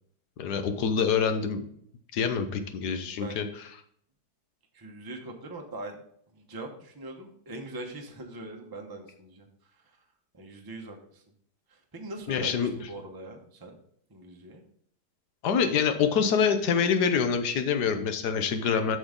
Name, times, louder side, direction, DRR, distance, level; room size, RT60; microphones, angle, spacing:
voice 1, 0.4-1.6 2.1-3.5 12.3-12.7 15.4-19.0, left 6 dB, 85° left, 8 dB, 1.4 m, -26 dB
voice 2, 3.0-3.4 4.7-6.0 6.3-9.5 10.3-11.2 11.7-13.8 14.1-14.6 18.5-18.8, right 2 dB, 20° right, 3 dB, 0.8 m, -42 dB
7.7 x 6.5 x 3.8 m, 0.66 s
omnidirectional pair, 1.7 m